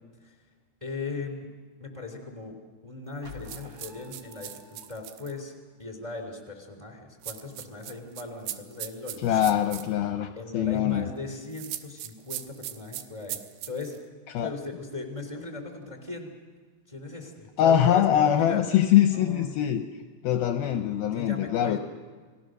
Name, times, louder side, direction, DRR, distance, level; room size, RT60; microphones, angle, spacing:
voice 1, 0.8-1.5 1.8-2.5 2.8-5.5 5.8-9.5 10.4-13.4 13.7-14.0 14.4-16.3 16.9-18.6 19.1-19.5 21.1-21.8, left 3 dB, 10° right, 3 dB, 2.5 m, -38 dB
sound 1, 3.2-5.3, left 3 dB, 35° right, 1.8 m, -48 dB
sound 2, 3.5-5.3 7.2-9.9 11.5-14.0, right 12 dB, 80° right, 3.1 m, -38 dB
voice 2, 9.2-11.1 14.3-14.5 17.6-19.9 20.2-21.8, left 10 dB, 75° left, 7 dB, 2.4 m, -23 dB
29.5 x 19.5 x 6.6 m, 1.5 s
omnidirectional pair, 4.9 m